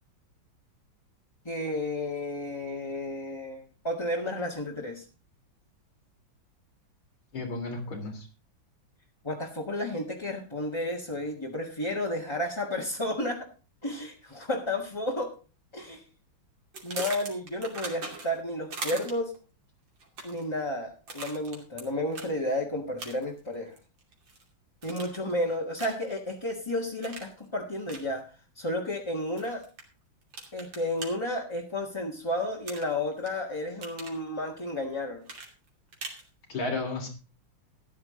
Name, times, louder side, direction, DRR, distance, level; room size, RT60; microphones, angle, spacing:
voice 1, 1.4-5.0 9.2-13.5 13.8-15.4 15.7-16.0 16.8-19.4 20.2-23.8 24.8-29.7 30.5-35.2, left 1 dB, 15° left, -2 dB, 1.7 m, -32 dB
voice 2, 7.3-8.3 36.5-37.1, left 3 dB, 90° left, 3 dB, 4.3 m, -33 dB
sound 1, 16.7-18.4 18.7-19.4 20.0-20.5 21.1-21.8 22.1-22.3 23.0-23.4 23.8-24.4 24.8-25.3 25.8-26.1 27.0-27.3 27.9-28.0 29.4-29.8 30.3-31.1 32.7-33.3 33.6-34.2 35.3-36.2, right 3 dB, 70° right, 3.5 m, -39 dB
14.0 x 10.5 x 3.8 m, 0.33 s
omnidirectional pair, 2.2 m